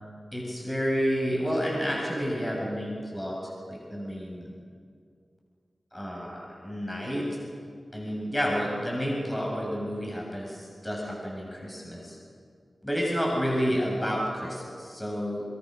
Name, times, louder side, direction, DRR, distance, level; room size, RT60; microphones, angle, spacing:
voice 1, 0.3-4.5 5.9-7.3 7.9-12.2 12.8-15.4, equal, 15° left, -3 dB, 7.9 m, -30 dB
24.0 x 24.0 x 6.9 m, 2.2 s
cardioid pair, 55°, 0 cm